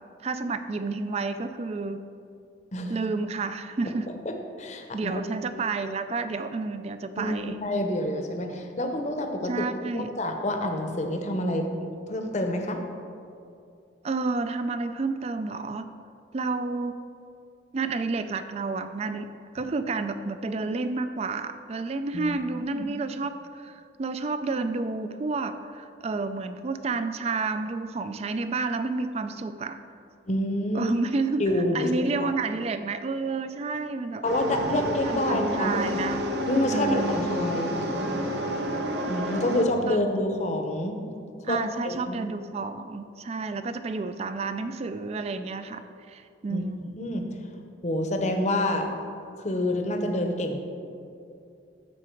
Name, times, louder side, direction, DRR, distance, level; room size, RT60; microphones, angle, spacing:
voice 1, 0.2-2.0 2.9-4.1 4.9-7.6 9.4-10.1 14.0-15.9 16.3-17.0 17.7-19.3 19.5-29.8 30.7-31.5 31.7-34.2 35.1-36.2 36.7-37.3 39.0-39.1 39.9-40.0 41.4-46.9, right 3 dB, 35° right, 10 dB, 0.3 m, -30 dB
voice 2, 4.2-5.2 7.2-7.4 7.6-9.7 9.9-11.7 12.1-12.8 22.1-22.4 22.6-22.8 30.3-30.9 31.4-32.3 34.2-35.8 36.5-38.2 39.0-41.0 41.5-42.2 46.5-46.7 47.0-47.3 47.8-48.9 49.4-50.6, left 1 dB, 40° left, 5 dB, 0.8 m, -28 dB
sound 1, 34.2-39.6, equal, 60° right, 0.9 m, -29 dB
13.0 x 4.7 x 4.5 m, 2.5 s
head